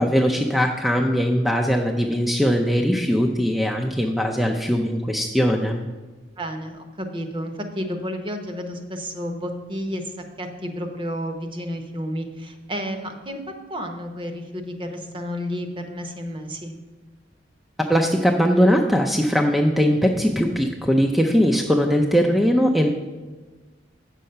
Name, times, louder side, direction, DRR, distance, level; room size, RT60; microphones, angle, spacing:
voice 1, 0.0-5.8 17.9-22.9, equal, ahead, 1 dB, 0.5 m, -20 dB
voice 2, 6.4-13.4 13.7-16.7, equal, 25° right, 5 dB, 0.9 m, -31 dB
8.2 x 6.5 x 5.6 m, 1.3 s
head